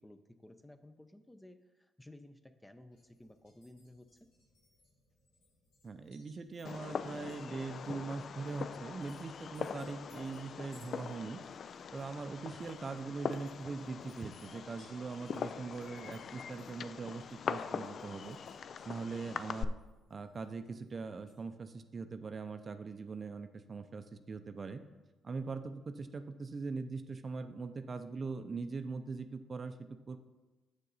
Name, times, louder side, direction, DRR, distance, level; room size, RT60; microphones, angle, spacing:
voice 1, 0.0-4.3, left 1 dB, 10° left, 9 dB, 0.6 m, -56 dB
sound 1, 2.9-21.4, left 2 dB, 90° left, 2.6 m, -69 dB
voice 2, 5.8-11.4 11.9-18.4 18.8-19.8 20.1-24.8 25.2-29.8 30.1-30.2, right 4 dB, 40° right, 9 dB, 0.5 m, -41 dB
Fireworks, 6.6-19.6, left 6 dB, 55° left, 0.3 m, -42 dB
7.3 x 6.6 x 4.0 m, 1.2 s
supercardioid pair, 65°, 0 cm